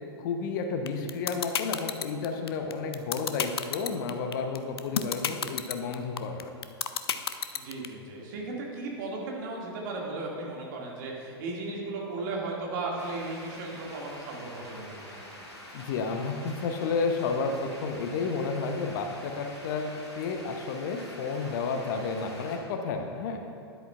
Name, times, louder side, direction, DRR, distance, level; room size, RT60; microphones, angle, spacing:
voice 1, 0.2-6.5 15.7-23.4, left 4 dB, 50° left, 5 dB, 0.8 m, -31 dB
sound 1, 0.9-7.9, left 8 dB, 65° left, 0.5 m, -29 dB
voice 2, 7.5-15.5, right 2 dB, 50° right, -2 dB, 2.1 m, -36 dB
sound 2, 13.0-22.6, left 1 dB, 90° left, 1.9 m, -46 dB
12.5 x 10.0 x 2.4 m, 2.6 s
figure-of-eight pair, 95°, 14 cm